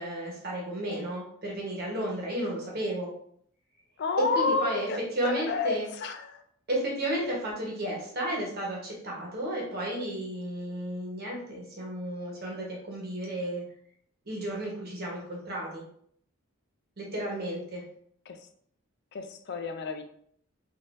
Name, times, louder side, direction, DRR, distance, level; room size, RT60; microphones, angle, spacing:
voice 1, 0.0-3.1 4.2-4.9 5.1-5.9 6.7-13.6 14.3-15.8 17.0-17.8, right 1 dB, 50° right, -3 dB, 1.1 m, -33 dB
voice 2, 4.0-5.0 5.2-6.4 18.3-18.4 19.1-20.0, left 4 dB, 55° left, 6 dB, 0.4 m, -30 dB
3.7 x 2.5 x 2.5 m, 0.66 s
head